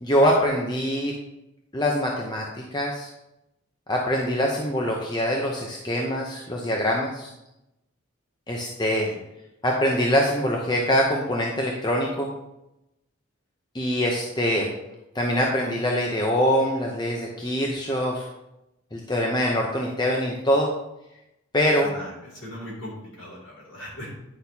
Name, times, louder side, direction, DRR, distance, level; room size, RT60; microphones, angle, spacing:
voice 1, 0.0-1.1 1.7-2.5 2.7-3.1 3.9-7.3 8.5-9.1 9.6-12.3 13.7-14.7 15.1-18.3 18.9-20.7 21.5-21.9, equal, 20° left, -1 dB, 0.7 m, -24 dB
voice 2, 21.8-24.2, equal, 60° left, -3 dB, 2.8 m, -39 dB
9.9 x 6.2 x 2.8 m, 0.89 s
head